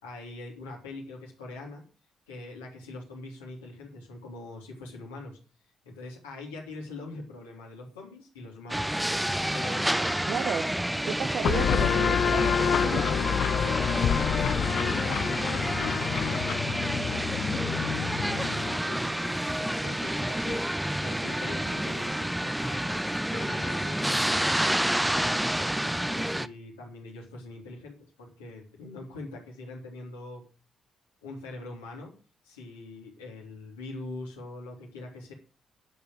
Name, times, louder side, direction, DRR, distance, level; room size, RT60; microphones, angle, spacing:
voice 1, 0.0-1.8 2.3-5.4 5.8-8.9 9.5-9.9 13.6-16.6 17.0-24.3 24.7-30.4 31.2-32.1 32.4-35.3, left 2 dB, 75° left, -2 dB, 3.4 m, -43 dB
sound 1, 8.7-26.5, right 1 dB, 5° right, 0.6 m, -29 dB
voice 2, 10.3-10.6 11.0-13.3 21.7-21.8, right 7 dB, 55° right, 9 dB, 0.9 m, -33 dB
sound 2, 11.4-18.8, left 9 dB, 55° left, 0.5 m, -28 dB
10.5 x 7.0 x 7.9 m, 0.37 s
figure-of-eight pair, 40°, 0 cm